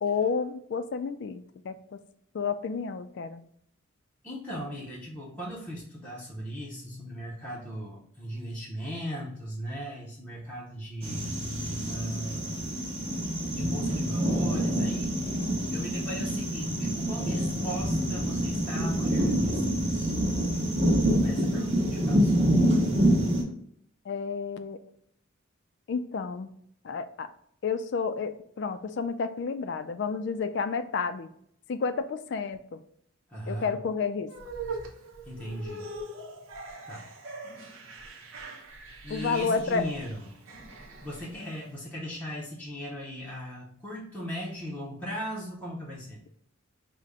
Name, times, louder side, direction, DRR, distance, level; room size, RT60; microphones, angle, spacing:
voice 1, 0.0-2.0 2.3-3.4 24.1-24.8 25.9-26.5 26.8-27.3 27.6-31.3 31.7-32.8 33.5-34.3 39.1-39.9, left 5 dB, 55° left, 10 dB, 0.3 m, -30 dB
voice 2, 4.2-11.3 11.9-12.6 13.5-15.4 15.7-20.1 21.2-22.3 33.3-33.8 35.2-36.0 36.9-37.1 39.0-40.3 41.0-46.2, equal, 5° left, -6 dB, 0.7 m, -38 dB
sound 1, 11.0-23.4, equal, 30° right, 1.0 m, -26 dB
sound 2, 34.3-41.7, right 2 dB, 75° right, 0.8 m, -42 dB
5.0 x 2.1 x 3.4 m, 0.67 s
head